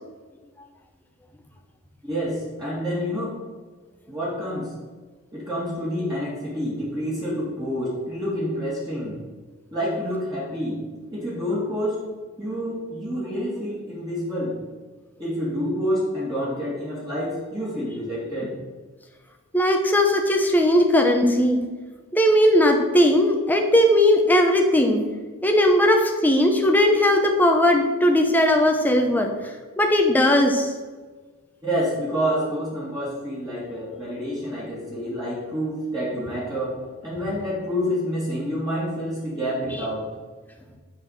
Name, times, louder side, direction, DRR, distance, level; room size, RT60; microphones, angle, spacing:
voice 1, 2.0-3.4 4.1-4.7 5.3-9.2 9.7-10.8 11.1-12.0 12.4-14.6 15.2-18.5 31.6-40.1, equal, 15° right, -8 dB, 2.3 m, -28 dB
voice 2, 19.5-21.6 22.1-25.0 25.4-29.3 29.8-30.7, left 1 dB, 10° left, 3 dB, 1.0 m, -18 dB
8.5 x 4.9 x 6.7 m, 1.4 s
head